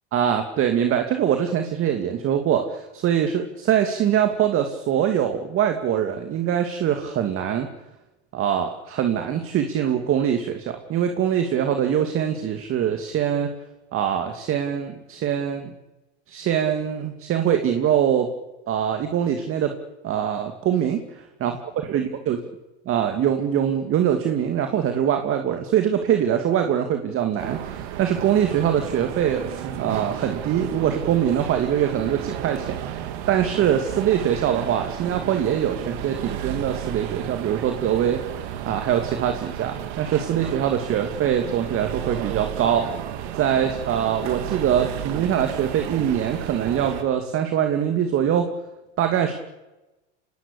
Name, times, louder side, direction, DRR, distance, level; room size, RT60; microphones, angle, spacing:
voice 1, 0.1-7.7 8.3-13.5 13.9-15.7 16.3-18.3 18.7-19.8 20.0-21.6 21.8-22.4 22.9-43.0 43.3-48.5 49.0-49.4, right 9 dB, 40° right, 6 dB, 2.5 m, -23 dB
sound 1, 27.4-47.0, right 11 dB, 65° right, 3.3 m, -33 dB
25.5 x 19.0 x 8.5 m, 1.0 s
hypercardioid pair, 110°, 34 cm